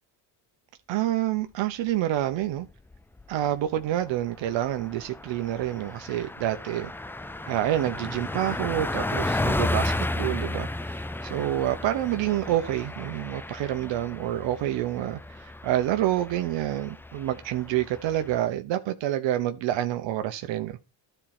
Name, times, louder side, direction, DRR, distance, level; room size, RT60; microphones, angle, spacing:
voice 1, 0.9-2.7 3.3-6.9 7.5-20.8, right 13 dB, 60° right, 1.0 m, -28 dB
Car passing by, 2.7-3.3 3.7-3.8 4.1-18.4, left 2 dB, 5° left, 0.4 m, -33 dB
13.0 x 4.5 x 4.3 m
supercardioid pair, 85°, 50 cm